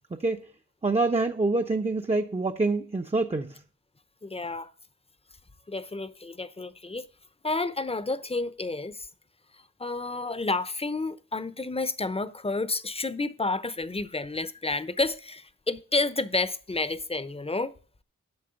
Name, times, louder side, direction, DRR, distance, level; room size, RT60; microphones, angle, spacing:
voice 1, 0.1-0.4 0.8-3.6, right 3 dB, 20° right, 0.8 m, -26 dB
voice 2, 4.2-4.7 5.7-7.1 7.4-9.1 9.8-17.7, left 3 dB, 20° left, 0.8 m, -30 dB
8.8 x 5.9 x 7.0 m
cardioid pair, 55°, 31 cm